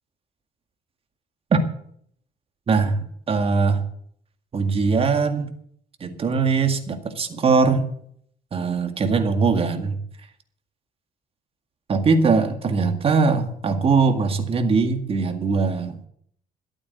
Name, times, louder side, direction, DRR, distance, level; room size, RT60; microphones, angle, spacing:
voice 1, 2.7-3.8 4.5-5.5 6.0-7.9 8.5-10.0 11.9-16.0, right 4 dB, 35° right, 7 dB, 2.0 m, -21 dB
12.5 x 8.8 x 8.1 m, 0.63 s
cardioid pair, 110°, 16 cm